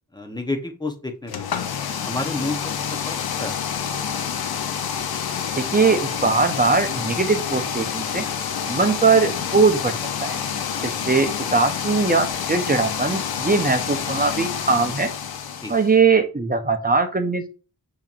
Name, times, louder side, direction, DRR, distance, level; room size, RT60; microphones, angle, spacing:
voice 1, 0.1-1.5 2.1-3.6 15.6-15.7, left 2 dB, 10° left, 4 dB, 0.7 m, -30 dB
sound 1, 1.3-15.9, left 7 dB, 80° left, 0.5 m, -28 dB
voice 2, 5.5-8.2 8.7-9.9 10.2-10.3 10.8-15.1 15.7-17.5, right 4 dB, 25° right, 7 dB, 0.6 m, -20 dB
6.8 x 2.9 x 2.4 m, 0.35 s
wide cardioid pair, 70°, 36 cm